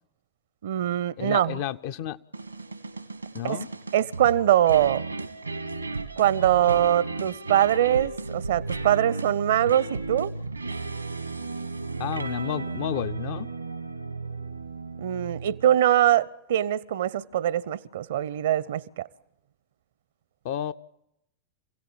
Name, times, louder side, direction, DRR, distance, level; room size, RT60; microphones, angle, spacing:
voice 1, 0.6-1.6 3.4-3.6 3.9-5.0 6.2-10.3 15.0-19.1, right 11 dB, 60° right, 0.8 m, -23 dB
voice 2, 1.2-2.2 3.3-3.7 12.0-13.5 20.4-20.7, left 10 dB, 50° left, 0.7 m, -31 dB
sound 1, 2.3-15.8, right 3 dB, 85° right, 1.5 m, -34 dB
27.5 x 17.0 x 7.2 m
figure-of-eight pair, 90°, 0 cm